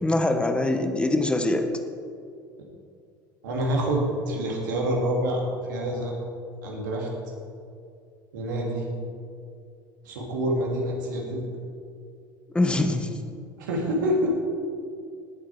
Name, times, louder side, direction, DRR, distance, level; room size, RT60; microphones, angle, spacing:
voice 1, 0.0-1.7 12.5-13.2, left 2 dB, 10° left, 6 dB, 1.3 m, -23 dB
voice 2, 3.4-5.4 5.7-6.1 6.6-7.1 8.3-8.8 10.0-11.5 13.6-14.4, right 1 dB, 65° right, -1 dB, 2.7 m, -26 dB
18.5 x 8.1 x 4.6 m, 2.4 s
figure-of-eight pair, 65°, 11 cm